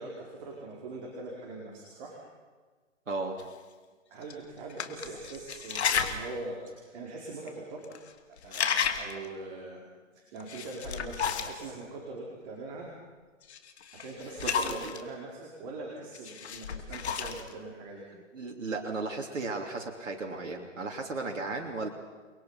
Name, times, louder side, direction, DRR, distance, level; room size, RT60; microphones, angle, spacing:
voice 1, 0.0-2.2 4.1-8.0 8.3-9.8 10.1-12.9 13.9-18.0, right 2 dB, 35° right, -2 dB, 4.8 m, -42 dB
voice 2, 3.1-3.4 14.4-14.9 18.3-21.9, right 3 dB, 75° right, 0 dB, 3.2 m, -35 dB
sound 1, 3.4-3.5 4.2-4.3 4.7-6.2 6.7-6.8 7.5-7.6 7.8-8.1 8.4-9.3 10.4-11.7 13.5-15.0 16.1-17.5, left 7 dB, 55° left, 2.7 m, -32 dB
29.5 x 22.0 x 5.8 m, 1.4 s
hypercardioid pair, 140°, 39 cm